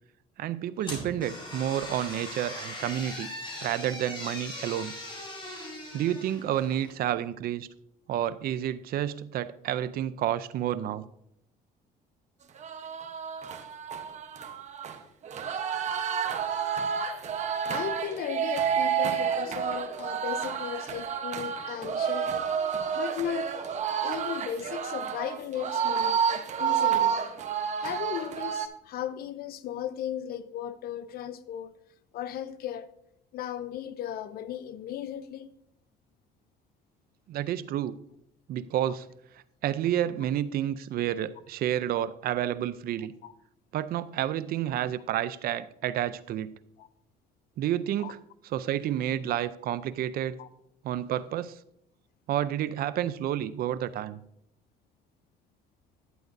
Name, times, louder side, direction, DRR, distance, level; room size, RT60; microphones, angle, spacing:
voice 1, 0.4-3.3 3.6-4.9 5.9-7.7 8.1-11.1 37.3-38.0 38.5-39.1 39.6-43.1 43.7-46.6 47.6-48.2 48.4-50.4 50.8-51.6 52.3-54.2, right 11 dB, 65° right, 0.5 m, -30 dB
sound 1, 0.8-7.0, left 1 dB, 30° left, 3.8 m, -40 dB
sound 2, 12.6-28.7, right 8 dB, 45° right, 0.9 m, -30 dB
voice 2, 17.7-22.5 22.9-23.5 24.0-27.3 27.8-31.7 32.1-32.9 33.3-35.5 38.9-39.0 43.2-43.3 46.8-46.9 48.0-48.1 50.4-50.5, left 10 dB, 65° left, 0.6 m, -36 dB
11.0 x 9.2 x 2.6 m
cardioid pair, 110°, 17 cm